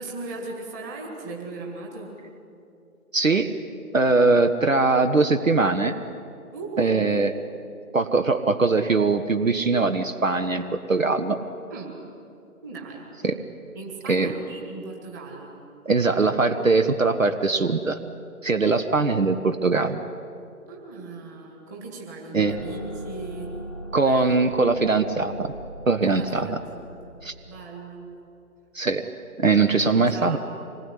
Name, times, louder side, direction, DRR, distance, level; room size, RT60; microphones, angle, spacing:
voice 1, 0.0-2.1 6.5-7.2 11.7-11.9 12.6-13.1 13.7-15.6 20.7-23.5 24.0-24.8 26.0-27.2 27.5-28.1 29.7-30.4, right 3 dB, 10° right, -1 dB, 2.0 m, -38 dB
voice 2, 3.1-3.5 3.9-5.9 6.8-7.3 7.9-11.4 13.2-13.3 14.1-14.3 15.8-18.0 18.4-20.0 22.3-22.5 23.9-25.5 25.9-26.6 27.2-27.3 28.7-29.1 29.4-30.4, right 3 dB, 60° right, 8 dB, 1.4 m, -21 dB
sound 1, 22.4-27.7, right 1 dB, 20° left, 0.7 m, -40 dB
25.5 x 20.0 x 9.8 m, 2.7 s
figure-of-eight pair, 150°, 45 cm